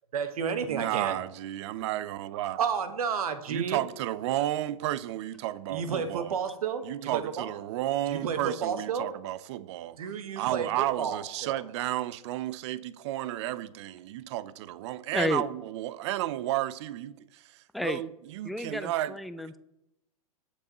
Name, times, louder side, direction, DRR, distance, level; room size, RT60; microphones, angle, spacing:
voice 1, 0.1-1.2 2.6-3.8 5.7-7.5 8.1-9.1 10.0-11.6, right 6 dB, 70° right, 1.4 m, -31 dB
voice 2, 0.7-2.6 3.5-6.4 6.8-10.0 10.4-19.1, right 14 dB, 50° right, 0.6 m, -32 dB
voice 3, 15.1-15.4 17.7-18.0 18.4-19.6, left 1 dB, ahead, 0.3 m, -31 dB
18.5 x 7.3 x 3.0 m
hypercardioid pair, 120°, 19 cm